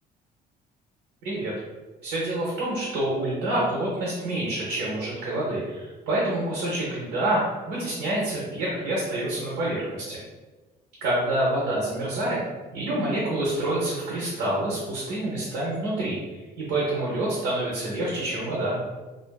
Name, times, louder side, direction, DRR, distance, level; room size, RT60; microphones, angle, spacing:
voice 1, 1.2-1.5 2.0-10.2 11.0-12.4 12.7-16.2 16.6-18.8, right 1 dB, 90° right, -5 dB, 0.7 m, -27 dB
2.5 x 2.3 x 2.2 m, 1.2 s
cardioid pair, 110°, 17 cm